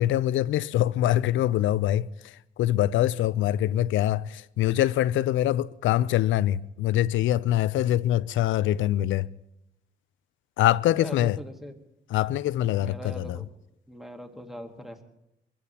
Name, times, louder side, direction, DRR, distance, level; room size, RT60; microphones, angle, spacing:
voice 1, 0.0-9.3 10.6-11.4 12.1-13.4, left 13 dB, 75° left, 0.5 m, -24 dB
voice 2, 10.8-11.8 12.8-13.5 13.9-15.0, equal, ahead, 1.5 m, -41 dB
22.5 x 15.5 x 2.9 m
cardioid pair, 90°, 20 cm